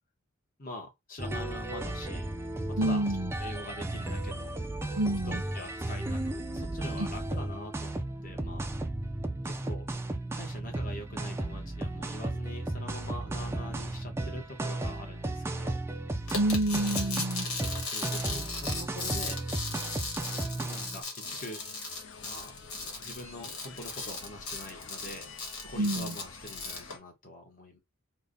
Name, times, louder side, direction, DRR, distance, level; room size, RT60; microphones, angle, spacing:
voice 1, 0.6-2.3 2.8-3.0 3.3-4.5 5.3-8.7 9.4-9.8 10.3-15.8 17.6-19.4 20.6-21.6 22.2-22.6 23.0-25.3 25.7-27.8, left 1 dB, 40° left, 1.1 m, -44 dB
sound 1, 1.2-21.0, right 2 dB, 10° right, 0.3 m, -34 dB
voice 2, 2.8-3.3 4.9-5.4 7.0-7.1 16.3-17.5 25.8-26.2, right 1 dB, 65° right, 0.7 m, -28 dB
sound 2, 16.3-26.9, left 3 dB, 80° left, 1.5 m, -37 dB
sound 3, 21.2-27.0, left 4 dB, 60° left, 0.7 m, -49 dB
3.4 x 2.2 x 3.8 m
head